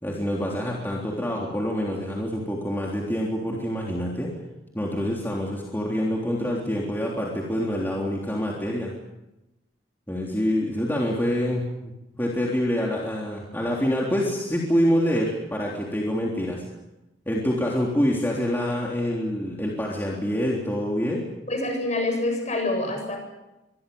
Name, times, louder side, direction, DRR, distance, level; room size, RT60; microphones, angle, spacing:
voice 1, 0.0-4.3 4.7-8.9 10.1-11.9 12.2-16.6 17.3-21.2, equal, 10° left, -3 dB, 3.6 m, -26 dB
voice 2, 21.5-23.2, left 2 dB, 40° left, 4 dB, 7.8 m, -26 dB
24.5 x 22.5 x 7.1 m, 0.96 s
head